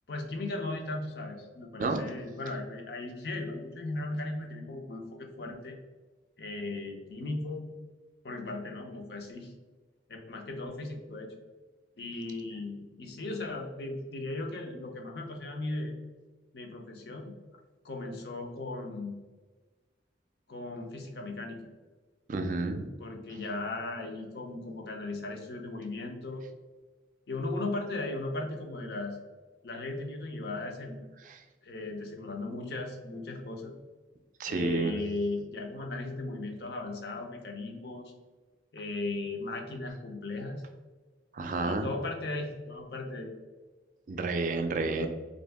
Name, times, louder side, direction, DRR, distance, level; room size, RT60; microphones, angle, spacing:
voice 1, 0.1-5.8 6.4-7.7 8.2-9.5 10.1-11.3 12.0-15.9 16.5-17.4 17.8-19.2 20.5-21.6 23.0-26.4 27.3-29.2 29.6-31.0 31.6-33.7 34.5-38.1 38.7-40.6 41.6-43.3, left 2 dB, 60° left, 3 dB, 0.5 m, -37 dB
voice 2, 1.8-2.1 22.3-22.9 31.2-31.4 34.4-35.0 41.3-41.9 44.1-45.1, right 3 dB, 45° right, 6 dB, 0.3 m, -30 dB
2.7 x 2.6 x 3.3 m, 1.3 s
head